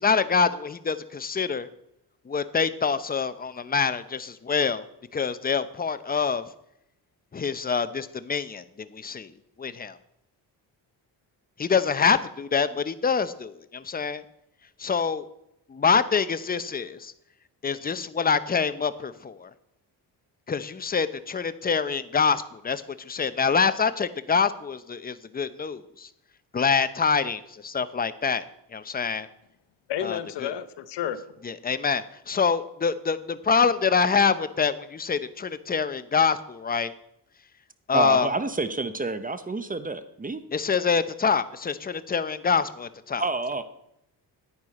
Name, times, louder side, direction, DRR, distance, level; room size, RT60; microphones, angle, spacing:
voice 1, 0.0-1.7 2.3-4.8 5.1-6.4 7.3-9.3 9.6-10.0 11.6-14.2 14.8-15.2 15.7-17.1 17.6-19.5 20.5-26.1 26.5-28.4 28.7-29.3 30.0-30.5 31.4-36.9 37.9-38.3 40.5-43.3, left 5 dB, 20° left, 0.7 m, -25 dB
voice 2, 29.9-31.2, left 10 dB, 80° left, 0.9 m, -31 dB
voice 3, 37.9-40.4 43.2-43.6, right 3 dB, 20° right, 0.9 m, -28 dB
9.8 x 9.5 x 4.2 m
cardioid pair, 80°, 41 cm